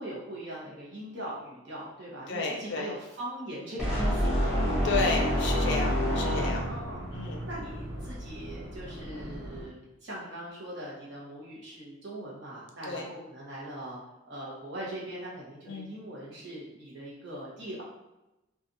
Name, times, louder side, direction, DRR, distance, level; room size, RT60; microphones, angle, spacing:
voice 1, 0.0-4.5 6.6-7.0 7.5-14.0 14.2-17.8, right 1 dB, 60° right, -5 dB, 1.0 m, -41 dB
voice 2, 2.3-2.9 4.8-6.7 7.1-7.5 12.8-13.1 15.7-15.9, left 4 dB, 55° left, 1 dB, 0.5 m, -32 dB
sound 1, 3.8-7.0, equal, 5° right, 0.7 m, -27 dB
sound 2, 4.5-9.7, equal, 80° right, 1.4 m, -40 dB
2.9 x 2.4 x 2.6 m, 0.95 s
head